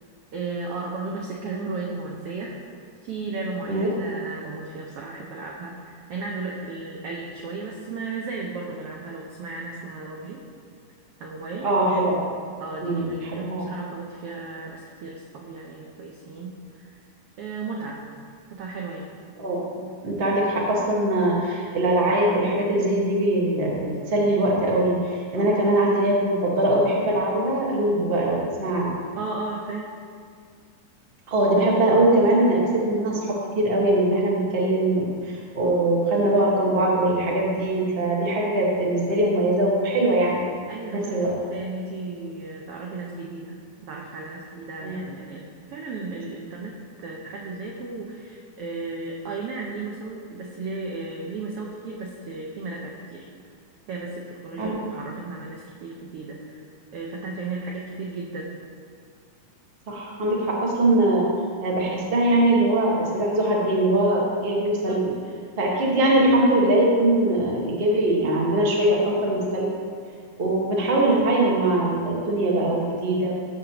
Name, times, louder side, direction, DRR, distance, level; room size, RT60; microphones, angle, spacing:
voice 1, 0.3-2.7 3.0-10.4 11.2-11.7 12.6-17.0 17.4-18.0 18.5-19.1 25.3-25.6 29.1-29.9 40.7-53.3 53.9-56.7 56.9-58.5 64.7-65.0, right 3 dB, 85° right, -1 dB, 1.3 m, -35 dB
voice 2, 11.6-12.2 12.8-13.6 19.4-28.9 31.3-40.4 40.9-41.4 44.8-45.0 54.6-54.7 59.9-61.3 61.6-65.1 65.6-69.7 70.4-73.3, right 1 dB, 50° right, -4 dB, 0.6 m, -22 dB
14.5 x 6.5 x 2.9 m, 2.1 s
omnidirectional pair, 3.6 m